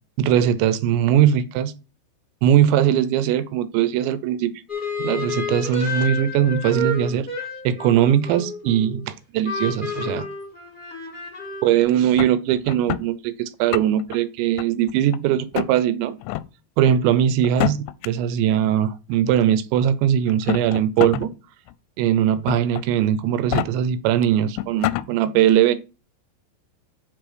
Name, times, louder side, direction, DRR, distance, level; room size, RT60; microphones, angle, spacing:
voice 1, 0.2-1.7 2.4-4.5 5.0-7.3 7.6-10.3 11.6-16.2 16.8-21.3 22.0-25.8, right 10 dB, 80° right, 13 dB, 2.9 m, -20 dB
sound 1, 4.7-9.1 9.4-11.8, left 2 dB, 60° left, 0.5 m, -30 dB
sound 2, 12.2-13.1 13.5-14.2 14.6-15.2 15.5-15.7 16.2-16.5 17.4-18.1 19.1-19.2 20.3-21.3 21.7-21.8 22.5-22.8 23.3-23.7 24.2-24.3 24.6-25.1, left 16 dB, 90° left, 3.0 m, -26 dB
7.6 x 6.3 x 5.0 m, 0.32 s
omnidirectional pair, 5.4 m